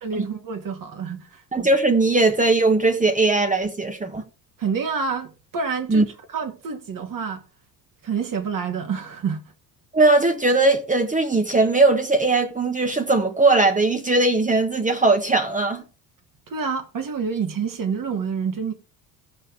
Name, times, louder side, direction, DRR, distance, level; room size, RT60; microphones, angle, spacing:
voice 1, 0.0-1.4 4.6-6.0 6.3-7.4 8.0-9.4 16.5-18.7, right 5 dB, 40° right, 2.3 m, -28 dB
voice 2, 1.5-4.2 5.9-6.0 9.9-15.8, right 2 dB, 15° right, 1.5 m, -19 dB
16.5 x 5.5 x 3.4 m
hypercardioid pair, 65°, 49 cm